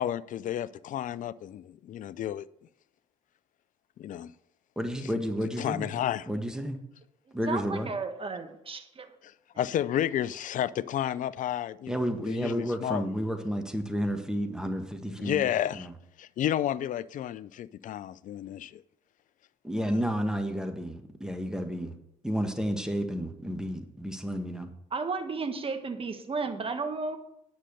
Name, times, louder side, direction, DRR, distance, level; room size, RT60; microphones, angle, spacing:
voice 1, 0.0-2.5 4.0-4.3 5.6-6.3 9.6-12.0 12.2-13.0 15.2-15.9 16.2-18.8, left 11 dB, 50° left, 0.5 m, -31 dB
voice 2, 4.7-5.9 6.3-6.8 7.3-7.9 11.9-15.5 15.7-15.9 19.6-21.9 22.2-24.7, equal, 5° right, 1.5 m, -31 dB
voice 3, 7.5-9.1 24.9-27.2, right 4 dB, 35° right, 1.6 m, -33 dB
10.0 x 6.5 x 6.7 m
hypercardioid pair, 55°, 17 cm